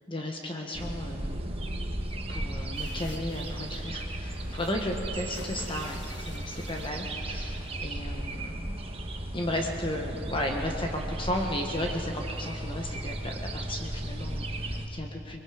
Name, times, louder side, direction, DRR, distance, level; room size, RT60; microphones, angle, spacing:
voice 1, 0.1-1.3 2.3-8.8 9.3-15.4, left 1 dB, 25° left, 2 dB, 1.4 m, -34 dB
sound 1, 0.7-14.9, right 1 dB, 30° right, 1.3 m, -35 dB
sound 2, 2.7-7.7, left 2 dB, 65° left, 1.5 m, -49 dB
24.5 x 21.0 x 5.1 m, 2.8 s
head